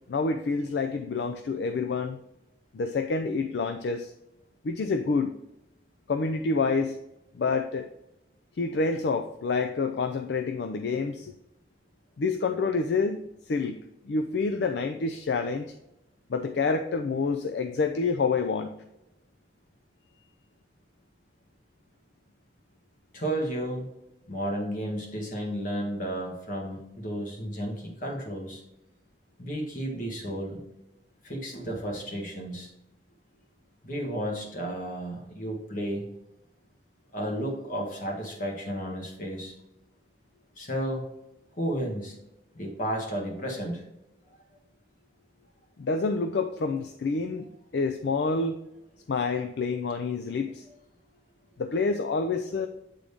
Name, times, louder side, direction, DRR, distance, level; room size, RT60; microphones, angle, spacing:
voice 1, 0.1-2.2 2.7-4.1 4.6-5.3 6.1-7.0 7.3-7.9 8.6-11.3 12.2-15.7 16.3-18.7 45.8-47.5 47.7-48.6 49.1-50.6 51.6-52.7, left 4 dB, 65° left, 7 dB, 0.4 m, -28 dB
voice 2, 23.1-23.9 24.3-28.6 29.4-30.6 31.2-32.7 33.8-36.1 37.1-39.5 40.6-41.0 41.6-42.2 42.5-43.8, right 1 dB, 45° left, 0 dB, 1.6 m, -32 dB
8.2 x 3.8 x 3.5 m, 0.87 s
head